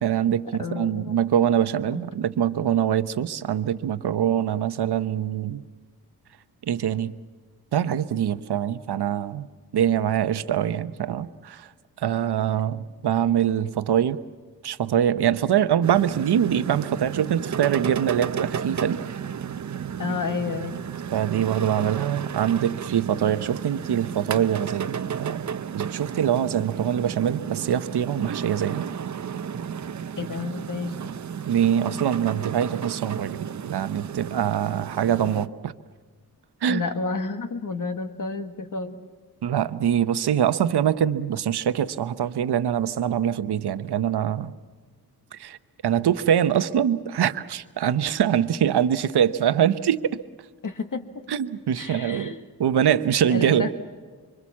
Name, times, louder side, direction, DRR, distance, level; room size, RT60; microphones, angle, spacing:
voice 1, 0.0-5.6 6.7-7.1 7.7-9.5 9.7-11.7 12.0-14.2 14.6-19.0 21.1-25.5 25.7-28.8 31.5-35.7 36.6-36.8 39.4-44.5 45.3-45.6 45.8-50.2 51.3-52.3 52.6-53.7, right 9 dB, 75° right, 13 dB, 0.9 m, -24 dB
voice 2, 0.6-1.1 1.9-2.0 20.0-20.8 30.2-31.1 36.7-39.0 50.6-51.1 51.8-52.4 53.3-53.7, left 4 dB, 50° left, 7 dB, 1.8 m, -30 dB
sound 1, 15.8-35.5, right 8 dB, 45° right, 0.7 m, -33 dB
25.5 x 24.5 x 7.4 m, 1.5 s
wide cardioid pair, 130°, 39 cm